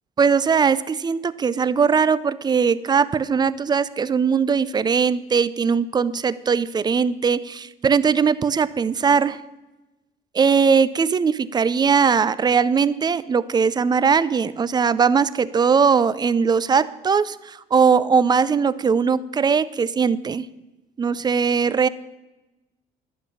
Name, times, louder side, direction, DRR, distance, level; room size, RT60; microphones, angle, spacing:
voice 1, 0.2-9.4 10.3-20.5 21.0-21.9, right 6 dB, 25° right, 17 dB, 0.4 m, -20 dB
11.5 x 5.7 x 7.0 m, 1.0 s
cardioid pair, 110°, 17 cm